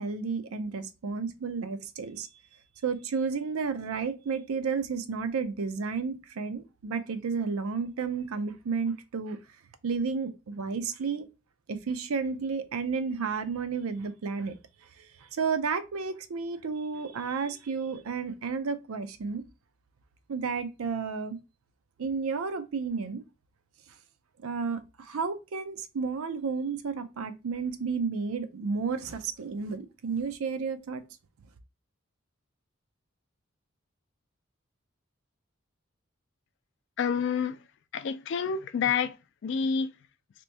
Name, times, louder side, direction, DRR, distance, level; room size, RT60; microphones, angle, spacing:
voice 1, 0.0-2.3 2.8-9.4 9.8-11.3 11.7-14.6 15.0-19.4 20.3-21.4 22.0-23.2 24.4-31.0, right 5 dB, 90° right, 0.5 m, -32 dB
voice 2, 37.0-37.6 37.9-39.2 39.4-39.9, left 6 dB, 55° left, 0.3 m, -28 dB
2.9 x 2.6 x 3.2 m
head